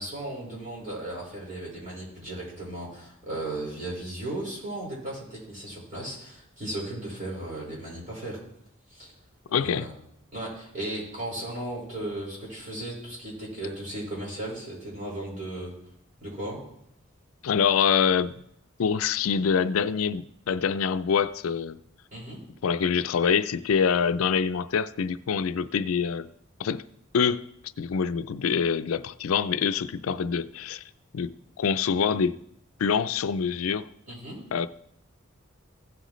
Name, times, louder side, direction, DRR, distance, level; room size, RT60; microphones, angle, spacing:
voice 1, 0.0-8.4 8.9-9.1 9.6-9.9 10.3-15.7 16.2-16.6 22.1-22.4 34.1-34.4, right 1 dB, 40° right, 5.1 m, -36 dB
voice 2, 9.5-9.9 17.4-18.3 18.8-21.8 22.6-26.3 26.6-26.8 27.1-27.5 27.8-30.8 31.1-32.4 32.8-33.9 34.5-34.7, left 6 dB, 85° left, 0.4 m, -25 dB
16.0 x 7.8 x 3.1 m
head